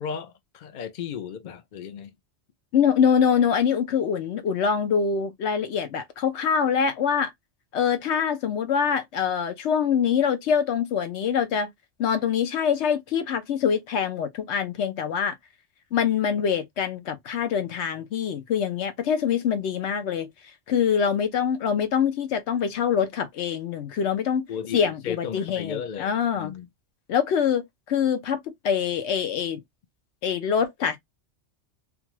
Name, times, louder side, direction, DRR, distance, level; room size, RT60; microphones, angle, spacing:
voice 1, 0.0-2.1 24.5-26.7, left 7 dB, 50° left, 0.6 m, -35 dB
voice 2, 2.7-7.3 7.7-11.7 12.0-15.3 15.9-20.3 20.7-24.5 24.7-26.6 27.1-29.6 30.2-31.0, left 7 dB, 75° left, 0.9 m, -24 dB
2.5 x 2.4 x 2.9 m
omnidirectional pair, 1.2 m